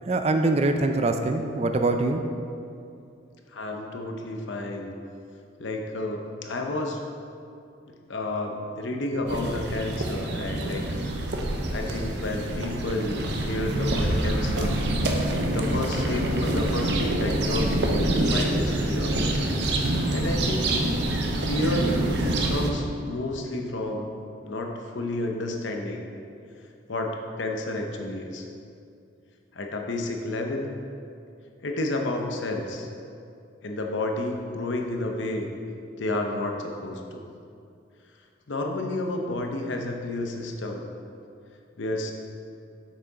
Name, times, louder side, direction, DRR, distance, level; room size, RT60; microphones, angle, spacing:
voice 1, 0.1-2.2, right 2 dB, 35° right, 6 dB, 0.3 m, -23 dB
voice 2, 3.5-4.9 5.6-7.0 7.9-10.8 11.7-14.8 15.5-19.2 20.1-20.7 21.4-21.9 22.5-24.1 24.4-26.1 26.9-28.5 29.5-30.8 31.6-32.9 33.6-35.5 35.9-37.3 38.5-40.8 41.8-42.1, left 2 dB, 75° left, 2 dB, 0.7 m, -31 dB
sound 1, 9.3-22.7, right 1 dB, 60° right, 0.7 m, -26 dB
6.5 x 5.9 x 4.0 m, 2.5 s
head